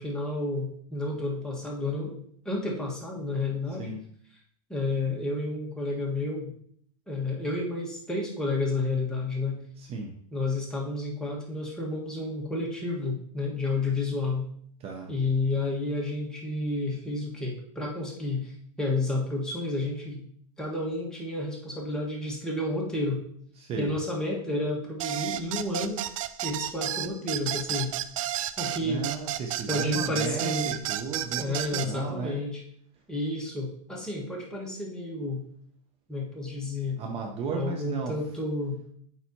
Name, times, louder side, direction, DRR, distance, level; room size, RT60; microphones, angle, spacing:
voice 1, 0.0-2.1 2.4-3.9 4.7-6.5 7.1-9.6 10.3-14.5 15.1-18.5 18.8-20.2 20.6-23.2 23.8-26.0 26.4-27.9 28.6-29.1 29.7-30.7 31.4-32.6 33.1-35.4 36.1-37.0 37.5-38.8, left 2 dB, 5° left, -3 dB, 1.6 m, -30 dB
voice 2, 3.7-4.0 9.8-10.1 14.8-15.1 23.5-23.9 28.8-32.4 37.0-38.1, right 5 dB, 35° right, 2 dB, 0.9 m, -34 dB
sound 1, 25.0-31.9, right 12 dB, 65° right, 0.5 m, -31 dB
8.9 x 4.2 x 2.9 m, 0.62 s
hypercardioid pair, 115°, 18 cm